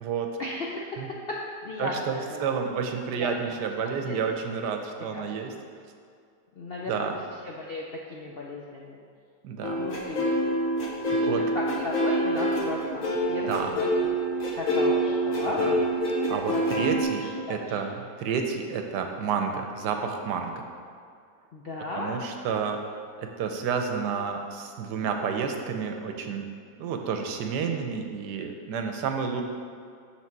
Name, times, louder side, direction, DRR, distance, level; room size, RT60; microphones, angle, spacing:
voice 1, 0.4-1.0 1.3-1.4 1.6-2.4 3.1-3.6 4.0-4.2 5.1-5.3 6.6-7.1 7.4-7.8 8.1-9.0 9.8-10.3 11.0-14.1 14.5-15.6 16.3-16.8 17.2-17.8 21.5-22.1, left 2 dB, 80° left, -3 dB, 0.5 m, -35 dB
voice 2, 1.8-5.5 6.9-7.1 9.4-9.8 11.1-11.4 13.4-13.7 15.6-15.7 16.1-20.6 21.9-22.8 23.2-26.5 26.8-29.4, right 6 dB, 75° right, 4 dB, 1.2 m, -30 dB
sound 1, 9.6-17.0, equal, 50° left, 1.5 m, -26 dB
6.3 x 6.0 x 4.5 m, 2.3 s
omnidirectional pair, 1.9 m